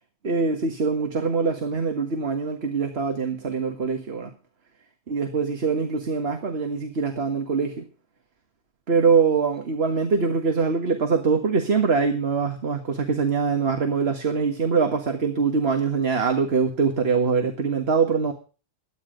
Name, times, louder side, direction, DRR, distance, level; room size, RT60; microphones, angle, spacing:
voice 1, 0.2-4.3 5.1-7.9 8.9-18.3, right 5 dB, 55° right, 1.8 m, -23 dB
22.0 x 9.9 x 3.9 m
omnidirectional pair, 1.3 m